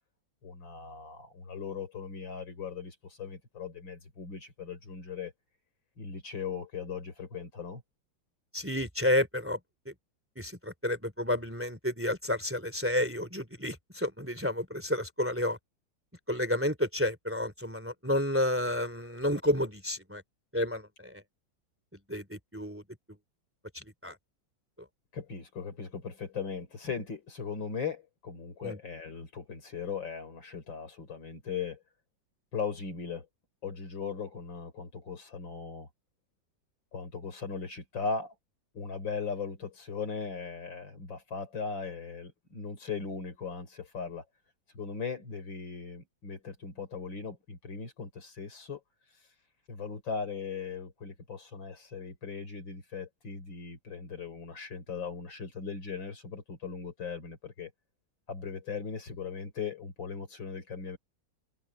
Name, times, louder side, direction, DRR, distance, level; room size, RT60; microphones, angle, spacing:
voice 1, 0.4-5.3 6.0-7.8 25.1-31.8 32.5-33.3 33.6-35.9 36.9-38.3 38.7-44.2 44.7-48.8 49.7-57.7 58.3-61.0, left 5 dB, 80° left, 4.5 m, -38 dB
voice 2, 8.5-9.6 9.8-9.9 10.4-15.6 16.3-20.2 20.5-21.2 22.1-22.8 23.7-24.2 28.6-28.8, left 1 dB, 5° right, 2.8 m, -31 dB
omnidirectional pair, 2.0 m